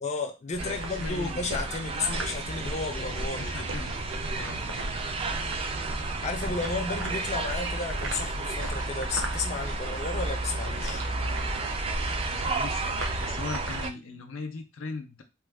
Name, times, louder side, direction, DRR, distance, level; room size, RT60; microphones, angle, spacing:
voice 1, 0.0-3.7 6.2-11.0, left 4 dB, 35° left, 0.4 m, -33 dB
sound 1, 0.5-13.9, right 1 dB, 70° right, 0.7 m, -34 dB
voice 2, 0.6-1.5 3.4-4.0 4.3-4.9 12.2-15.2, left 4 dB, 85° left, 0.6 m, -39 dB
sound 2, 0.6-13.9, right 4 dB, 30° right, 0.3 m, -35 dB
3.0 x 2.2 x 3.4 m
head